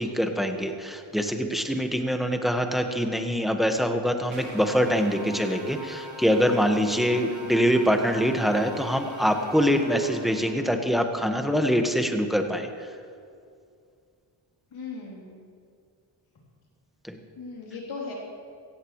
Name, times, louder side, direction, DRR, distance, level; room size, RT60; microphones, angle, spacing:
voice 1, 0.0-12.7 17.1-17.2, equal, ahead, 5 dB, 1.6 m, -24 dB
sound 1, 4.3-10.8, equal, 75° right, 2.5 m, -41 dB
voice 2, 7.1-7.5 14.7-15.4 17.4-18.1, left 4 dB, 80° left, -4 dB, 3.7 m, -38 dB
17.0 x 15.0 x 3.3 m, 2.3 s
cardioid pair, 50°, 48 cm